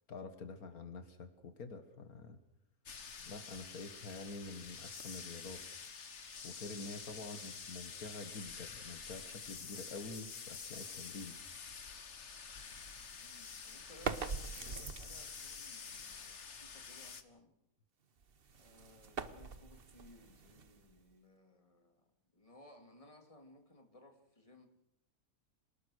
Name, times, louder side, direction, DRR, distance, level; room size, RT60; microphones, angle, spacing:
voice 1, 0.1-2.4 3.2-5.6 6.4-11.4, left 3 dB, 70° left, 8 dB, 2.1 m, -47 dB
sound 1, 2.9-17.2, left 5 dB, 50° left, 1.6 m, -48 dB
voice 2, 13.2-17.5 18.5-24.7, left 1 dB, 20° left, 4 dB, 2.8 m, -61 dB
sound 2, 13.8-15.5 18.2-21.1, right 5 dB, 40° right, 1.1 m, -43 dB
27.0 x 19.0 x 6.5 m, 0.79 s
omnidirectional pair, 1.6 m